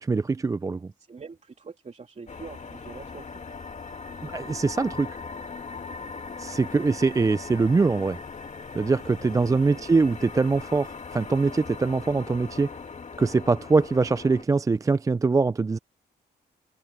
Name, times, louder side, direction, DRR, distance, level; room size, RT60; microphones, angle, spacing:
voice 1, 0.0-0.9 4.2-5.2 6.4-8.2 8.7-12.7 13.2-15.8, right 4 dB, 20° right, 0.3 m, -23 dB
voice 2, 1.0-3.3 9.4-9.9, right 4 dB, 40° right, 3.0 m, -44 dB
sound 1, 2.3-14.4, left 5 dB, 40° left, 2.2 m, -40 dB
cardioid pair, 75°, 18 cm